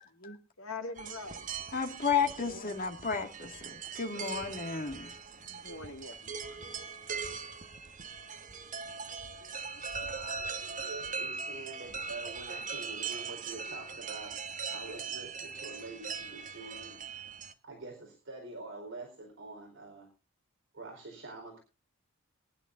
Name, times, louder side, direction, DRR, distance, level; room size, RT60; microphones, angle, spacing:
voice 1, 0.2-1.5 2.4-2.8 5.4-6.6 9.4-9.5 9.7-10.5, left 3 dB, 75° left, 2.2 m, -45 dB
sound 1, 1.0-17.5, right 5 dB, 35° right, 1.2 m, -40 dB
voice 2, 1.7-5.1, left 6 dB, 40° left, 2.1 m, -32 dB
voice 3, 10.9-17.0 17.6-20.1 20.7-21.6, right 3 dB, 60° right, 4.2 m, -46 dB
22.5 x 11.0 x 2.6 m
head